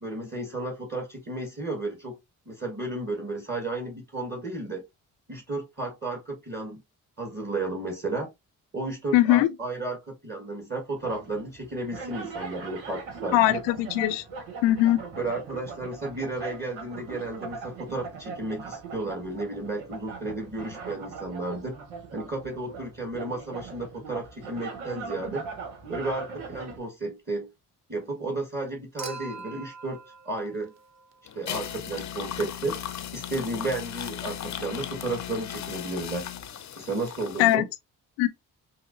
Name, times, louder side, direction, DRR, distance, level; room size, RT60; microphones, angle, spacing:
voice 1, 0.0-2.2 2.4-4.8 5.3-6.8 7.2-8.3 8.7-13.6 15.2-21.8 22.1-25.5 25.9-27.5 27.9-30.0 30.2-30.7 31.3-32.8 33.1-36.3 36.8-37.6, right 2 dB, 25° right, 1.5 m, -33 dB
voice 2, 9.1-9.5 13.3-14.2 14.6-15.0 37.4-37.7 38.2-38.3, left 15 dB, 80° left, 0.6 m, -20 dB
sound 1, 11.0-26.8, right 5 dB, 85° right, 1.1 m, -40 dB
Human group actions / Chink clink / Liquid, 29.0-31.4 32.9-33.0, right 4 dB, 40° right, 0.8 m, -43 dB
sound 2, 31.3-37.6, left 9 dB, 40° left, 0.7 m, -37 dB
5.7 x 2.1 x 2.5 m
hypercardioid pair, 50°, 42 cm